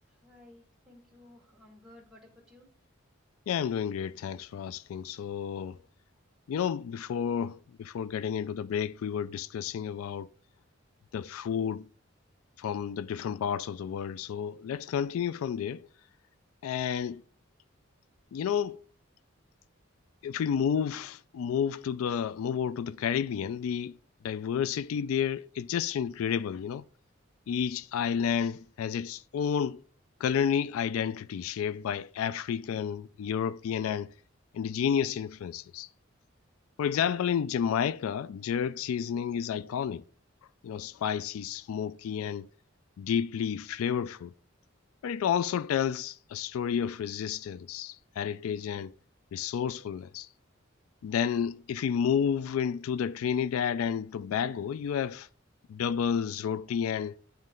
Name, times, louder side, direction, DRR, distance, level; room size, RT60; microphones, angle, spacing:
voice 1, 0.2-2.7, left 1 dB, 5° right, 1.9 m, -55 dB
voice 2, 3.5-5.8 6.5-10.3 11.1-11.9 12.6-15.9 16.6-17.2 18.3-18.8 20.2-24.0 24.2-26.8 27.5-29.8 30.2-34.1 34.5-35.9 36.8-40.0 40.6-42.5 43.0-44.3 45.0-48.9 49.3-50.3 51.0-55.3 55.7-57.2, left 8 dB, 85° left, 0.3 m, -31 dB
9.3 x 3.2 x 5.1 m
head